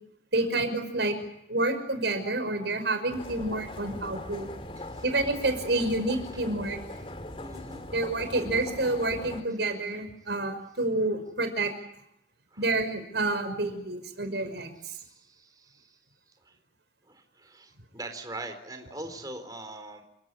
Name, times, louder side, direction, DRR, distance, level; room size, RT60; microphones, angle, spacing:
voice 1, 0.3-1.2 1.5-4.5 5.0-6.8 7.9-11.7 12.6-14.7, right 2 dB, 80° right, 8 dB, 5.7 m, -28 dB
sound 1, 3.1-9.4, left 1 dB, 30° left, 2.7 m, -40 dB
voice 2, 7.4-7.9 12.5-12.6 14.9-16.0 16.4-16.5 17.1-20.0, right 2 dB, 20° right, 5 dB, 4.1 m, -42 dB
29.5 x 18.0 x 8.4 m, 0.76 s
head